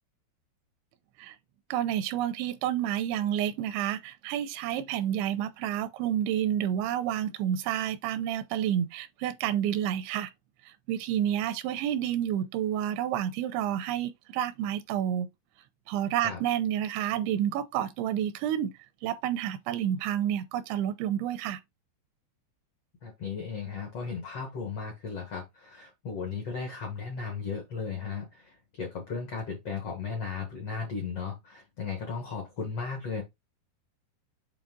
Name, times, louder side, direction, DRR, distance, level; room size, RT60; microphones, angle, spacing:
voice 1, 1.7-10.3 10.7-15.3 15.9-18.7 19.0-21.6, right 10 dB, 85° right, 2.9 m, -29 dB
voice 2, 23.0-33.2, left 5 dB, 80° left, 1.3 m, -36 dB
8.3 x 3.2 x 3.6 m
omnidirectional pair, 5.3 m